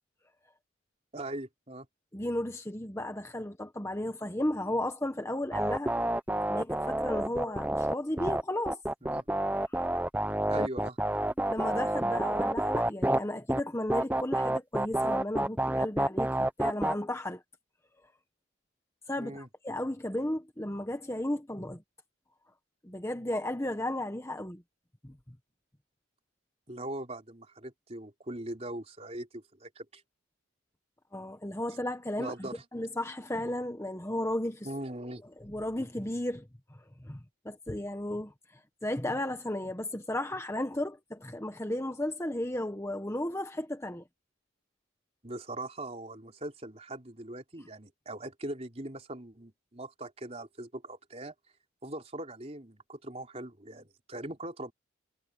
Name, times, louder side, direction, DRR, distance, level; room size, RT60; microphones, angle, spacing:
voice 1, 1.1-1.9 9.0-9.2 10.5-11.0 19.2-19.5 26.7-30.0 32.2-32.6 34.6-35.2 45.2-51.3 51.8-54.7, right 1 dB, 30° right, 3.9 m, -41 dB
voice 2, 2.1-5.9 6.5-8.8 9.7-9.8 10.5-10.7 11.5-17.4 19.1-21.8 22.8-24.6 25.0-25.1 31.1-34.7 35.4-36.5 37.0-38.3 38.8-44.0, left 1 dB, 15° left, 1.3 m, -34 dB
sound 1, 5.5-13.2 13.5-13.6 13.9-16.9, right 1 dB, 10° right, 0.7 m, -29 dB
head